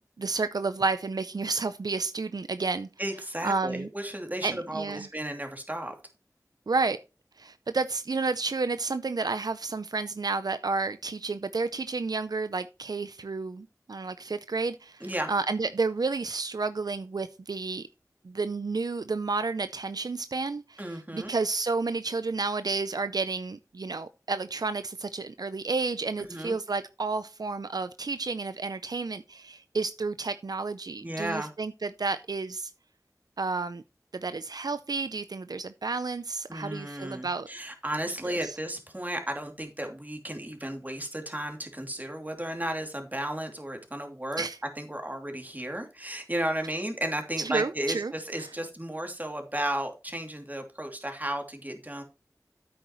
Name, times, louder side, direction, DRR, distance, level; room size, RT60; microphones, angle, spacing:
voice 1, 0.2-2.9 3.4-3.9 4.4-5.1 6.7-7.0 7.4-17.8 18.2-32.7 33.4-33.8 34.1-37.5 38.3-38.6 44.4-44.6 47.4-48.1 48.4-48.5, right 4 dB, 80° right, 0.5 m, -31 dB
voice 2, 3.0-5.9 15.0-15.3 20.8-21.3 26.3-26.6 31.0-31.5 36.5-44.4 44.8-52.0, right 1 dB, 25° right, 2.8 m, -34 dB
10.0 x 8.7 x 3.1 m
wide cardioid pair, 45°, 7 cm